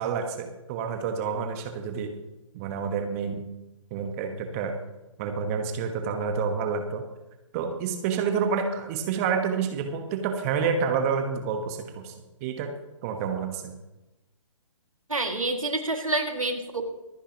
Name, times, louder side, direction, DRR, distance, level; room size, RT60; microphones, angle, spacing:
voice 1, 0.0-2.1 2.5-3.4 3.9-4.8 5.2-7.0 7.5-12.1 12.4-12.8 13.0-13.7, right 6 dB, 25° right, 5 dB, 1.3 m, -28 dB
voice 2, 15.1-16.8, right 2 dB, 85° right, 4 dB, 2.3 m, -28 dB
25.0 x 9.9 x 3.0 m, 1.0 s
figure-of-eight pair, 130°, 17 cm